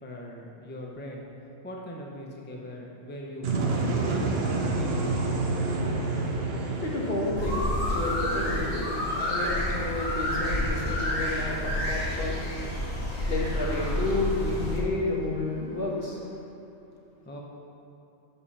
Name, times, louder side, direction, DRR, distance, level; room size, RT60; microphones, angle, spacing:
voice 1, 0.0-1.2 1.6-4.4 4.8-5.2 17.2-17.4, equal, 10° left, -2 dB, 0.6 m, -41 dB
sound 1, 3.4-9.3, right 3 dB, 60° right, 1.0 m, -29 dB
voice 2, 6.7-16.3, left 2 dB, 55° left, -3 dB, 1.4 m, -31 dB
sound 2, 7.4-14.8, left 1 dB, 75° left, 2.1 m, -29 dB
6.8 x 5.6 x 5.6 m, 2.9 s
omnidirectional pair, 1.2 m